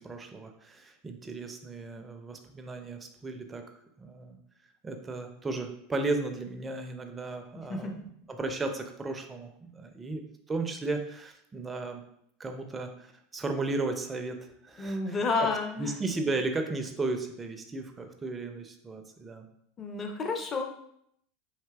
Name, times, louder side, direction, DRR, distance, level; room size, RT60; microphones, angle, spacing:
voice 1, 0.0-3.6 4.0-4.4 4.8-10.2 10.5-12.0 12.4-14.4 14.6-15.5 15.8-19.5, right 3 dB, 20° right, 5 dB, 0.4 m, -35 dB
voice 2, 14.8-16.0 19.8-20.6, left 3 dB, 30° left, 3 dB, 0.5 m, -30 dB
3.4 x 2.7 x 2.3 m, 0.72 s
hypercardioid pair, 90°, 0 cm